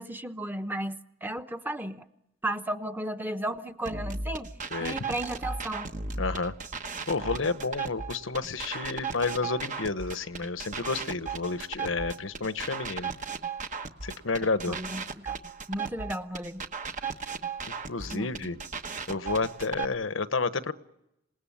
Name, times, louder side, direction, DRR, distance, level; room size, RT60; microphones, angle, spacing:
voice 1, 0.0-2.0 2.4-4.5 4.8-5.9 14.7-15.4 15.7-16.6 18.1-18.3, right 1 dB, 10° right, 8 dB, 1.0 m, -34 dB
sound 1, 3.9-19.9, right 5 dB, 40° right, 1.2 m, -36 dB
voice 2, 6.2-6.5 7.1-13.1 14.0-14.8 17.7-18.6 19.1-20.7, left 4 dB, 80° left, 12 dB, 1.1 m, -30 dB
27.0 x 19.5 x 8.7 m, 0.87 s
head